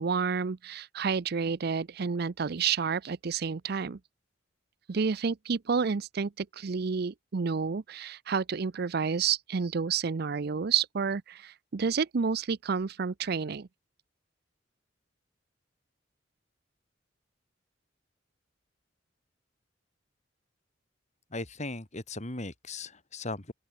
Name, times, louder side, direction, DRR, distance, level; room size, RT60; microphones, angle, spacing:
voice 1, 0.0-4.0 4.9-13.7, right 5 dB, 55° right, 0.5 m, -30 dB
voice 2, 21.3-23.5, left 2 dB, 40° left, 3.1 m, -38 dB
open air
head